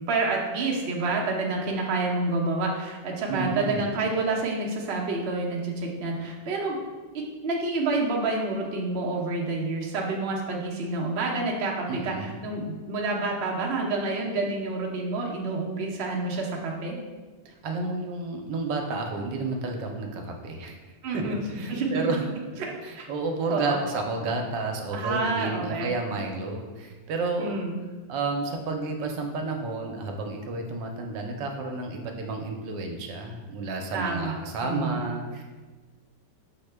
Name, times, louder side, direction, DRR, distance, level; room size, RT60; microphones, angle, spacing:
voice 1, 0.0-6.8 7.1-17.0 21.0-21.4 21.7-21.9 22.6-23.1 23.5-23.8 24.9-25.9 27.4-27.7 33.9-34.3 34.6-35.0, right 3 dB, 60° right, -2 dB, 0.7 m, -28 dB
voice 2, 3.3-3.9 11.9-12.4 17.4-20.8 21.1-22.2 22.8-27.6 28.1-35.4, right 3 dB, 80° right, 3 dB, 1.2 m, -31 dB
6.4 x 2.1 x 3.3 m, 1.3 s
omnidirectional pair, 1.9 m